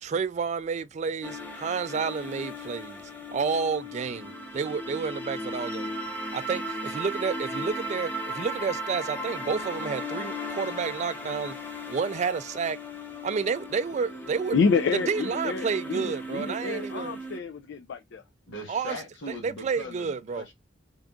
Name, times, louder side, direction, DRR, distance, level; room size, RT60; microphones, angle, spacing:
voice 1, 0.0-3.0 3.3-5.9 6.3-11.6 11.9-12.8 13.2-14.6 14.9-17.2 18.7-19.0 19.4-20.4, right 5 dB, 40° right, 0.3 m, -30 dB
sound 1, 1.2-17.4, equal, 10° left, 0.7 m, -36 dB
voice 2, 14.5-18.2, left 5 dB, 70° left, 0.4 m, -28 dB
voice 3, 18.5-20.5, left 1 dB, 90° left, 1.3 m, -40 dB
3.7 x 2.5 x 3.5 m
head